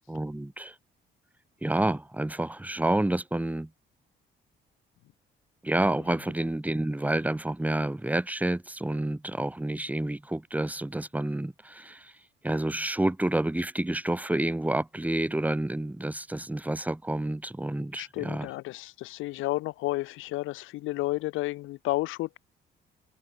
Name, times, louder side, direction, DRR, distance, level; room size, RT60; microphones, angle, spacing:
voice 1, 0.1-0.7 1.6-3.7 5.6-12.1 12.4-18.5, right 1 dB, 5° right, 1.6 m, -29 dB
voice 2, 18.0-22.4, left 18 dB, 85° left, 0.5 m, -31 dB
cardioid pair, 90°, 20 cm